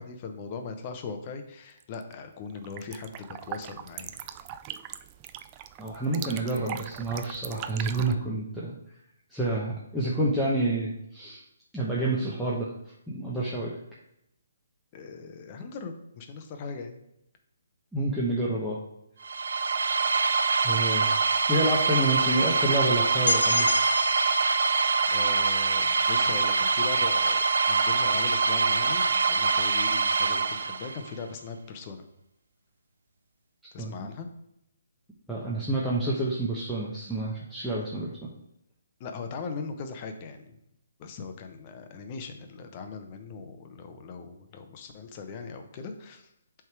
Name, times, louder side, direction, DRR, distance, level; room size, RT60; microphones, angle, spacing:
voice 1, 0.0-4.2 14.9-17.0 25.1-27.4 27.7-32.0 33.7-34.3 39.0-40.5 41.0-46.3, left 5 dB, 30° left, 6 dB, 0.8 m, -39 dB
sound 1, 1.8-2.1 2.5-8.1, right 11 dB, 25° right, 0.3 m, -40 dB
voice 2, 5.8-8.7 9.3-11.4 11.7-12.7 13.1-13.8 17.9-18.8 20.6-21.1 21.5-23.7 33.8-34.1 35.3-38.1, right 1 dB, ahead, -9 dB, 1.0 m, -28 dB
sound 2, 19.2-31.1, right 4 dB, 75° right, 0.6 m, -24 dB
sound 3, 23.3-27.1, left 3 dB, 85° left, 0.4 m, -32 dB
7.9 x 3.6 x 4.7 m, 0.81 s
hypercardioid pair, 155°, 0 cm